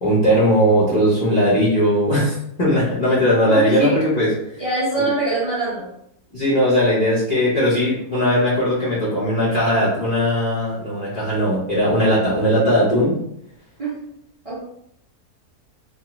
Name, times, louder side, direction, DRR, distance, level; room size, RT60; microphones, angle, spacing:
voice 1, 0.0-4.6 5.0-5.1 6.3-13.2, equal, 40° left, -8 dB, 0.6 m, -18 dB
voice 2, 3.5-4.0 4.6-5.9 13.8-13.9 14.4-14.6, right 2 dB, 50° right, -8 dB, 0.4 m, -23 dB
2.8 x 2.2 x 2.9 m, 0.74 s
omnidirectional pair, 1.7 m